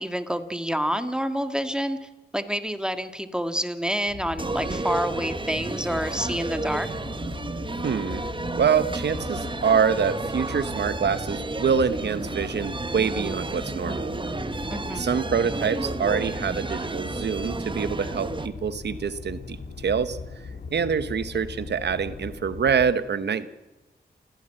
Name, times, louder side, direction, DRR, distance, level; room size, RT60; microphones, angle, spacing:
voice 1, 0.0-6.9 14.7-15.2, equal, 5° right, 8 dB, 1.8 m, -28 dB
sound 1, 4.1-22.9, left 4 dB, 85° left, 2.2 m, -39 dB
sound 2, 4.4-18.5, right 2 dB, 30° right, 1.1 m, -32 dB
voice 2, 7.8-8.2 8.5-14.2 15.0-20.2 20.7-23.5, right 6 dB, 80° right, 13 dB, 1.0 m, -25 dB
28.5 x 16.0 x 7.7 m, 1.1 s
cardioid pair, 50°, 17 cm